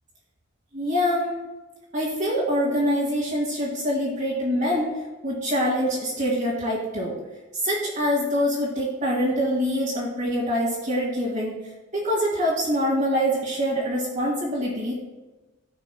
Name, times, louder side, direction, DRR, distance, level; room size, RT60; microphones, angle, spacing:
voice 1, 0.7-1.4 1.9-4.9 5.2-7.2 7.5-11.6 11.9-14.9, equal, 40° right, -8 dB, 2.2 m, -25 dB
15.5 x 5.9 x 2.3 m, 1.1 s
head